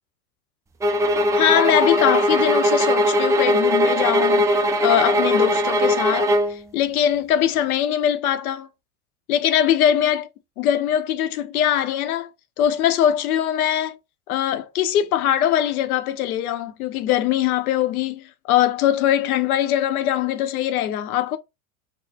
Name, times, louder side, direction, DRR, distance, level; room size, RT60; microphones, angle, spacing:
sound 1, 0.8-6.6, equal, 10° right, 0.3 m, -19 dB
voice 1, 1.3-4.5 4.8-8.7 9.3-10.3 10.6-12.3 12.6-14.0 14.3-21.4, left 11 dB, 75° left, 0.7 m, -21 dB
2.8 x 2.1 x 3.7 m
hypercardioid pair, 90°, 44 cm